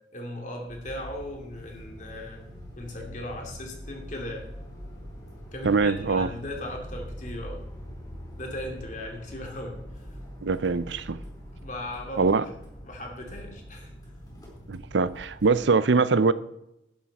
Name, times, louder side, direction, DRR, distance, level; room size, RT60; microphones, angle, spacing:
voice 1, 0.1-2.4 2.8-4.5 5.5-7.6 8.4-9.8 11.6-12.4 12.8-13.9, left 1 dB, 40° left, 2.7 m, -37 dB
sound 1, 0.7-15.6, equal, 20° left, 4.7 m, -43 dB
voice 2, 5.6-6.3 10.4-11.2 12.2-12.4 14.7-16.3, right 4 dB, 75° right, 0.6 m, -23 dB
11.5 x 11.0 x 4.2 m
head